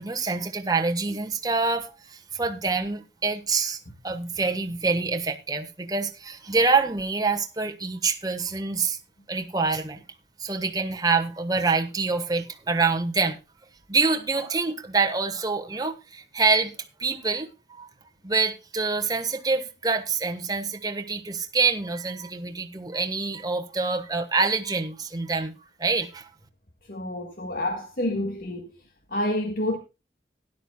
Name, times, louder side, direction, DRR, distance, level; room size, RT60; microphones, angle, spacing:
voice 1, 0.0-3.8 4.0-9.0 9.3-10.0 10.4-13.4 13.9-16.7 17.0-17.9 18.2-25.5 25.8-26.3, right 4 dB, 20° right, 1.3 m, -26 dB
voice 2, 26.9-28.7 29.1-29.8, left 1 dB, 55° left, 1.7 m, -28 dB
17.0 x 11.0 x 2.3 m
head